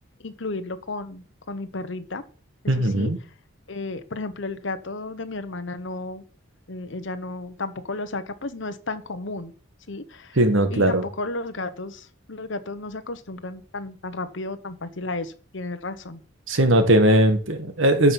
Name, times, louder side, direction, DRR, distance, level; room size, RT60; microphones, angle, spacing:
voice 1, 0.2-2.2 2.8-3.1 3.7-6.2 6.7-9.5 9.9-10.4 10.7-16.2, left 2 dB, 65° left, 10 dB, 1.1 m, -33 dB
voice 2, 2.7-3.2 10.4-11.0 16.5-18.1, right 1 dB, 70° right, 8 dB, 1.7 m, -19 dB
9.5 x 5.9 x 7.3 m, 0.41 s
head